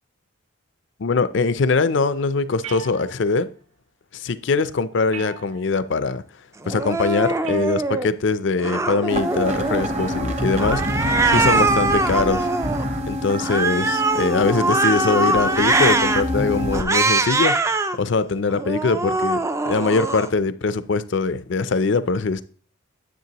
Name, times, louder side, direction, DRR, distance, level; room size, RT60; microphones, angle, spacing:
voice 1, 1.0-3.5 4.1-6.2 6.6-10.8 11.3-12.5 13.1-17.6 18.0-19.4 19.7-22.4, left 4 dB, 60° left, 0.5 m, -22 dB
sound 1, 2.6-3.5 5.1-5.9 7.4-8.1 10.0-10.4, right 5 dB, 80° right, 0.8 m, -39 dB
Cat, 6.6-8.1 8.6-9.9 10.6-12.8 13.4-16.2 16.7-18.0 18.5-20.3, right 3 dB, 15° right, 0.3 m, -22 dB
sound 2, 9.1-16.8, equal, 30° right, 0.8 m, -26 dB
9.4 x 7.7 x 2.9 m
head